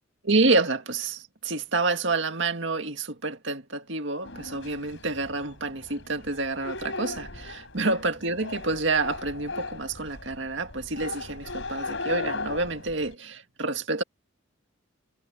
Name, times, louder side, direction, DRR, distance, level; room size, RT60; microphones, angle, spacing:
voice 1, 0.2-14.0, right 3 dB, 65° right, 2.1 m, -28 dB
sound 1, 4.2-13.1, left 3 dB, 65° left, 4.7 m, -37 dB
head